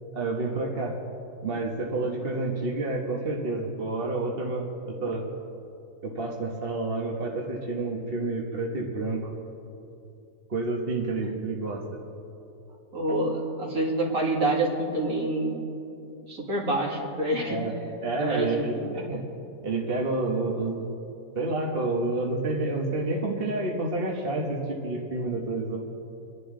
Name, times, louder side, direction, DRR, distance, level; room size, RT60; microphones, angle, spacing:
voice 1, 0.1-1.0 1.4-5.2 6.0-9.3 10.5-11.8 13.1-13.2 17.5-17.7 18.0-19.2 19.6-20.9 21.3-25.8, right 2 dB, 40° right, -1 dB, 1.4 m, -29 dB
voice 2, 12.9-15.6 16.3-17.6 18.2-19.1, right 2 dB, 55° right, -3 dB, 2.8 m, -27 dB
28.0 x 11.0 x 3.8 m, 2.8 s
omnidirectional pair, 1.7 m